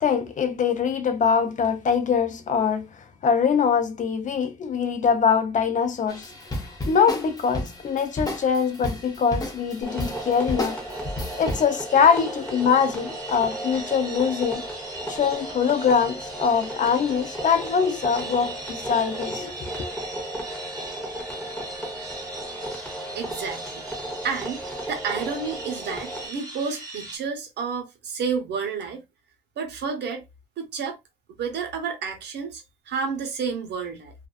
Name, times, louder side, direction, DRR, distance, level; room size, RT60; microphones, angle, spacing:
voice 1, 0.0-6.3 6.9-10.8 11.4-14.6 15.1-19.9, left 6 dB, 45° left, 0.5 m, -23 dB
sound 1, 6.1-11.7, left 1 dB, 20° left, 0.8 m, -33 dB
sound 2, 9.7-27.2, right 2 dB, 20° right, 1.1 m, -40 dB
sound 3, 9.8-26.3, right 1 dB, 5° left, 1.1 m, -35 dB
voice 2, 23.1-23.8 24.2-29.0 29.6-30.2 30.6-31.0 31.3-34.1, right 5 dB, 80° right, 0.8 m, -30 dB
2.5 x 2.2 x 2.4 m
cardioid pair, 120°, 17 cm